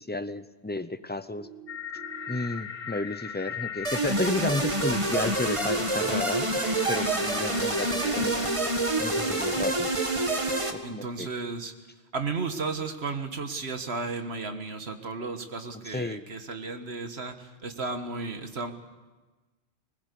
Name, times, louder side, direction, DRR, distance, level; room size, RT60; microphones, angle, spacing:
voice 1, 0.0-1.5 2.3-6.6 6.9-8.5 9.0-9.9 10.9-11.3 15.9-16.2, left 2 dB, 10° left, 12 dB, 0.5 m, -32 dB
sound 1, 1.4-2.4 4.4-5.4 7.4-8.4, right 8 dB, 85° right, 2.6 m, -47 dB
sound 2, 1.7-9.8, left 7 dB, 60° left, 1.2 m, -39 dB
sound 3, 3.8-10.7, right 2 dB, 30° right, 1.6 m, -27 dB
voice 2, 10.8-11.7 12.1-18.7, right 4 dB, 65° right, 7 dB, 1.8 m, -34 dB
20.5 x 20.5 x 8.4 m, 1.2 s
omnidirectional pair, 1.1 m